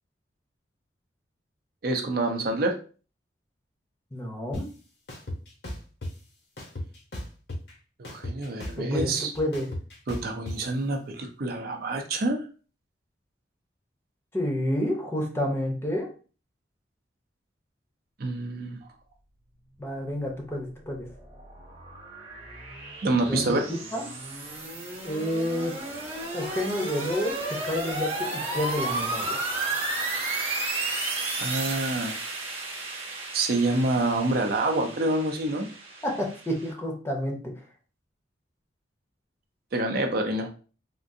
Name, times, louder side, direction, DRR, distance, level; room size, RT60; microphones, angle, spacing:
voice 1, 1.8-2.8 8.0-9.3 10.1-12.5 18.2-18.8 23.0-23.7 31.4-32.2 33.3-35.7 39.7-40.5, right 2 dB, 55° right, 3 dB, 0.5 m, -27 dB
voice 2, 4.1-4.7 8.8-9.1 9.4-9.7 14.3-16.1 19.8-21.1 23.3-24.0 25.0-25.8 26.3-29.4 36.0-37.5, left 1 dB, 15° left, 0 dB, 0.6 m, -29 dB
sound 1, 4.5-4.6 5.1-6.1 6.6-7.7 8.0-10.6, left 1 dB, 65° left, 0.9 m, -35 dB
sound 2, 20.7-36.7, right 2 dB, 30° right, 0.9 m, -33 dB
3.6 x 2.5 x 2.6 m, 0.37 s
head